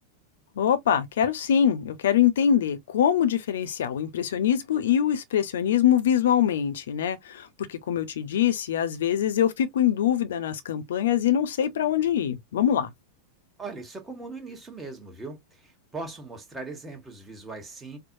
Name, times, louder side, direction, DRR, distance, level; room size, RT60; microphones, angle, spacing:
voice 1, 0.6-12.9, left 9 dB, 60° left, 0.7 m, -24 dB
voice 2, 13.6-18.0, right 3 dB, 10° right, 1.3 m, -39 dB
4.6 x 2.1 x 2.7 m
figure-of-eight pair, 90°, 0 cm